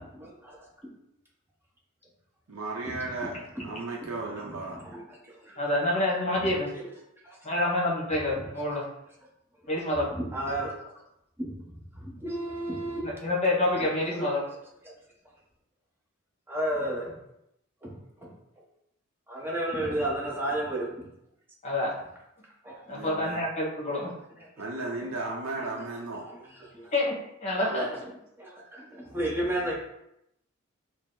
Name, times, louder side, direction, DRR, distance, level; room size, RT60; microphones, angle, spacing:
voice 1, 0.2-0.6 0.8-0.9 3.2-3.3 4.0-4.1 4.8-5.0 5.3-5.6 7.2-7.4 10.2-10.7 11.4-11.5 11.9-13.1 14.2-14.3 16.5-17.1 17.8-18.3 19.3-21.1 22.6-22.8 25.6-25.7 26.2-26.4 26.7-26.9 27.6-27.9 28.4-29.7, right 1 dB, 10° right, -3 dB, 0.8 m, -32 dB
voice 2, 2.5-3.4 3.6-4.8 22.9-23.4 24.6-26.3, right 2 dB, 90° right, -2 dB, 0.6 m, -35 dB
voice 3, 5.6-6.7 7.4-8.9 9.7-10.1 13.0-14.4 21.6-22.0 22.9-24.1 26.9-27.9, left 1 dB, 35° left, -3 dB, 1.1 m, -27 dB
4.5 x 2.0 x 3.7 m, 0.81 s
head